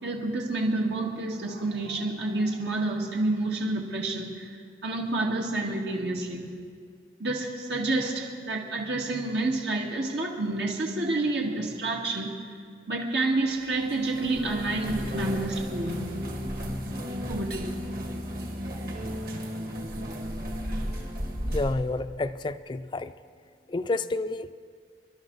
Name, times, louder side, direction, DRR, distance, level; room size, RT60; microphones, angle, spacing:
voice 1, 0.0-4.6 4.8-6.5 7.2-12.3 12.9-16.1 17.3-17.7, right 2 dB, 75° right, -1 dB, 1.9 m, -29 dB
sound 1, 13.5-21.8, equal, 55° right, 2.0 m, -34 dB
voice 2, 21.5-23.1 23.7-24.5, left 2 dB, 25° left, 12 dB, 0.4 m, -29 dB
28.5 x 12.0 x 3.9 m, 2.1 s
head